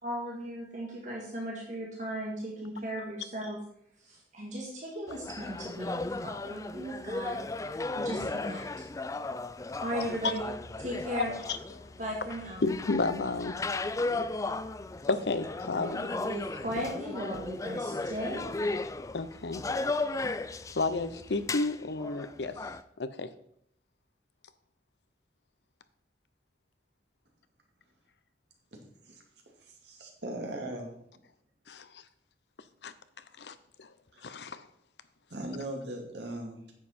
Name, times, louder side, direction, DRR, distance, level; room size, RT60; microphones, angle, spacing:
voice 1, 0.0-3.6 4.0-7.4 8.0-8.8 9.8-10.4 10.8-11.3 12.0-12.6 15.7-18.5, equal, 45° right, -2 dB, 1.8 m, -37 dB
sound 1, 5.1-22.8, left 3 dB, 20° left, 0.4 m, -36 dB
voice 2, 12.6-13.6 15.1-16.1 19.1-19.6 20.7-22.6 23.0-23.3 31.7-32.0 32.8-32.9 33.4-33.9 34.2-34.6, left 3 dB, 75° left, 12 dB, 0.7 m, -31 dB
voice 3, 29.7-30.9 34.1-34.2 35.3-36.7, right 1 dB, 75° right, 1 dB, 2.2 m, -39 dB
9.8 x 7.4 x 4.3 m, 0.71 s
head